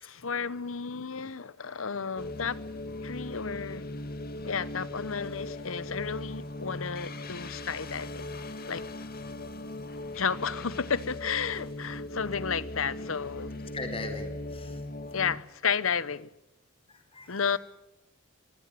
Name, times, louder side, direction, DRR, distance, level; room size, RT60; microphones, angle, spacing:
voice 1, 0.0-2.6 3.0-3.9 4.4-8.2 8.7-8.8 10.1-13.5 15.1-16.3 17.3-17.6, left 6 dB, 85° left, 1.0 m, -32 dB
sound 1, 2.2-15.4, left 2 dB, 45° left, 1.9 m, -39 dB
voice 2, 13.7-14.8 16.9-17.6, left 2 dB, 25° left, 4.0 m, -40 dB
23.5 x 16.5 x 9.2 m
head